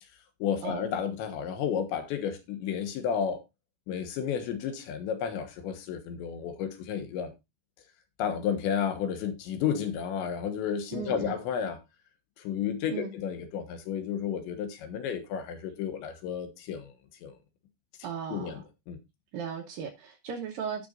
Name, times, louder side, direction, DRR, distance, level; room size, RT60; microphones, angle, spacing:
voice 1, 0.4-3.4 3.9-7.3 8.2-11.8 12.4-16.9 17.2-17.4 18.3-19.0, left 8 dB, 80° left, 3.5 m, -32 dB
voice 2, 10.9-11.4 12.9-13.1 18.0-18.6 19.3-20.9, right 7 dB, 70° right, 2.2 m, -36 dB
18.0 x 6.0 x 2.5 m
omnidirectional pair, 5.2 m